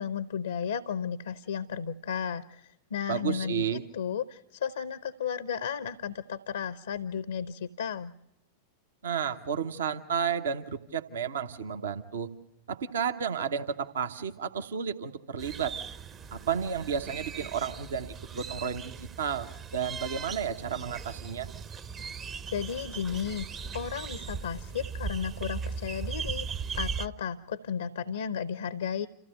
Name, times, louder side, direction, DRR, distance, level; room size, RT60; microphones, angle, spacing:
voice 1, 0.0-3.7 3.9-8.1 22.5-23.5 23.7-26.5 26.7-29.1, left 7 dB, 65° left, 15 dB, 0.7 m, -34 dB
voice 2, 3.1-3.8 9.0-12.3 12.7-15.7 16.3-21.5, right 7 dB, 65° right, 8 dB, 1.0 m, -32 dB
sound 1, 15.4-27.1, right 6 dB, 25° right, 0.8 m, -38 dB
27.5 x 16.0 x 6.5 m, 0.89 s
figure-of-eight pair, 90°, 0 cm